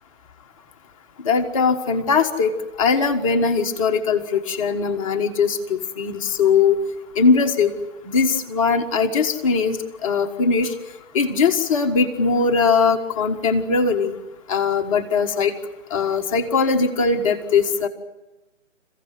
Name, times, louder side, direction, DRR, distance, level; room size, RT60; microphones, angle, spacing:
voice 1, 1.2-2.5 2.8-6.8 7.2-7.7 8.1-9.8 10.0-10.7 11.1-14.2 14.5-15.5 15.9-17.9, left 5 dB, 25° left, 4 dB, 1.6 m, -20 dB
28.5 x 16.0 x 9.4 m, 1.1 s
figure-of-eight pair, 145°, 39 cm